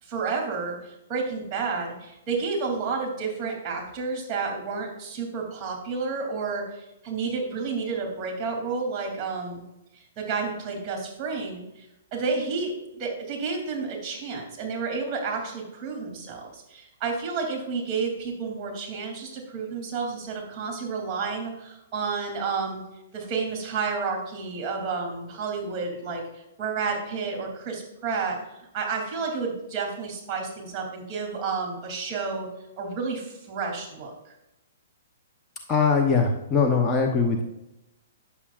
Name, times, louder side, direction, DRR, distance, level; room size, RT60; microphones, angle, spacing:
voice 1, 0.0-9.6 9.9-11.9 12.1-22.8 23.1-28.4 28.7-32.5 32.8-34.3, right 4 dB, 25° right, 1 dB, 3.0 m, -31 dB
voice 2, 35.7-37.4, left 5 dB, 20° left, 1 dB, 0.8 m, -21 dB
9.8 x 7.0 x 2.5 m, 0.90 s
hypercardioid pair, 135°, 0 cm